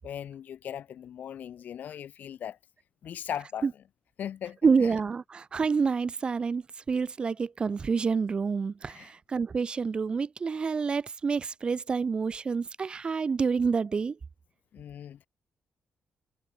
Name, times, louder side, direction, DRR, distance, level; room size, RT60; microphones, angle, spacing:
voice 1, 0.0-2.6 3.0-3.7 4.2-4.9 8.9-9.1 14.7-15.3, left 9 dB, 60° left, 7.8 m, -39 dB
voice 2, 4.6-14.2, right 5 dB, 30° right, 1.2 m, -28 dB
wide cardioid pair, 165°, 3 cm